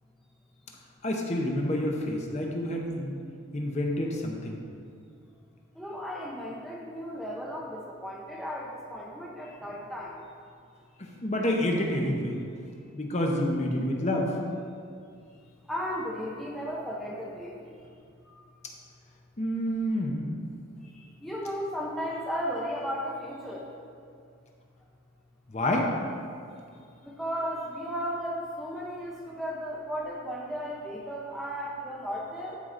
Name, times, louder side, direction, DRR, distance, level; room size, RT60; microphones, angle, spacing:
voice 1, 1.0-3.2 3.5-4.6 11.2-12.4 12.9-14.4 19.4-20.3 25.5-25.9, left 1 dB, 30° left, 0 dB, 0.8 m, -28 dB
voice 2, 5.8-10.2 15.7-17.7 20.9-23.7 27.0-32.6, equal, ahead, -4 dB, 0.7 m, -35 dB
12.0 x 4.8 x 3.8 m, 2.3 s
head